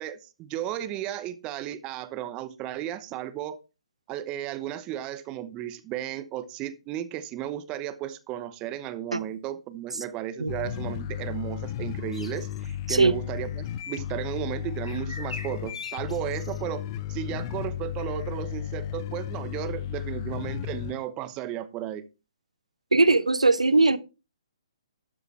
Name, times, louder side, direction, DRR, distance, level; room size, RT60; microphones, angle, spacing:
voice 1, 0.0-3.6 4.1-16.8 17.1-22.0, right 12 dB, 25° right, 1.0 m, -34 dB
sound 1, 10.5-20.9, left 11 dB, 35° left, 0.8 m, -34 dB
sound 2, 12.1-12.7 14.8-16.6, left 2 dB, 80° left, 6.2 m, -42 dB
voice 2, 22.9-24.0, right 3 dB, 90° right, 0.8 m, -20 dB
12.5 x 6.5 x 4.5 m
figure-of-eight pair, 135°, 3 cm